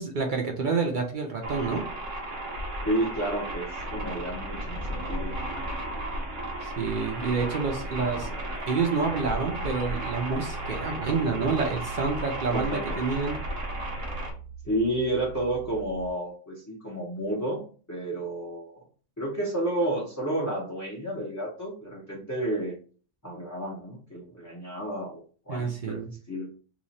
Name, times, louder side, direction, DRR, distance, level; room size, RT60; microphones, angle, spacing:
voice 1, 0.0-1.8 6.6-8.3 8.7-13.4 25.5-26.1, right 4 dB, 50° right, 2 dB, 0.7 m, -28 dB
sound 1, 1.4-14.3, right 1 dB, 90° right, 1.2 m, -34 dB
voice 2, 2.9-5.3 12.5-13.0 14.7-17.6 17.9-18.8 19.2-22.8 23.2-26.0 26.3-26.5, right 1 dB, 20° left, -3 dB, 0.6 m, -31 dB
sound 2, 9.0-16.1, right 6 dB, 75° left, 1.0 m, -42 dB
2.9 x 2.4 x 4.0 m, 0.41 s
omnidirectional pair, 1.3 m